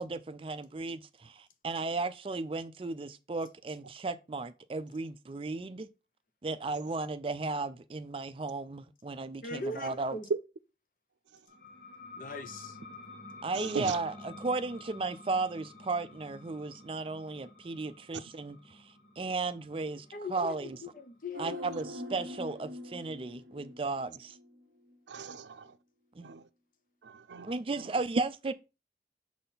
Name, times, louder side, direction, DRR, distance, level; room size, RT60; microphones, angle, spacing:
voice 1, 0.0-5.9 6.4-10.2 13.4-18.8 19.2-20.8 21.4-24.4 26.2-26.3 27.4-28.5, right 3 dB, 30° right, 0.4 m, -35 dB
voice 2, 9.4-10.3 12.2-12.8 20.1-21.6, left 2 dB, 50° left, 0.8 m, -40 dB
sound 1, 11.5-22.7, left 3 dB, 70° left, 2.3 m, -51 dB
voice 3, 13.5-14.0 25.1-25.7 26.2-26.4 27.0-27.9, right 5 dB, 90° right, 0.5 m, -40 dB
sound 2, 21.3-24.6 24.9-25.0, left 1 dB, 55° right, 0.8 m, -44 dB
6.5 x 4.1 x 3.9 m
head